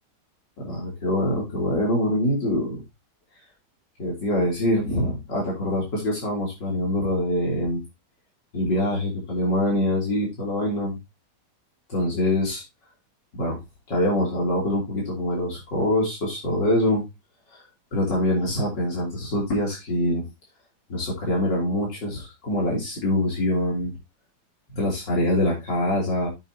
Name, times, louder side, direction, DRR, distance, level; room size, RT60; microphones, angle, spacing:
voice 1, 0.6-2.8 4.0-7.8 8.5-11.0 11.9-12.6 13.3-13.6 13.9-17.0 17.5-17.6 17.9-20.2 20.9-23.9 24.8-26.3, left 1 dB, 80° left, -4 dB, 3.9 m, -24 dB
8.7 x 8.1 x 2.8 m, 0.22 s
omnidirectional pair, 1.9 m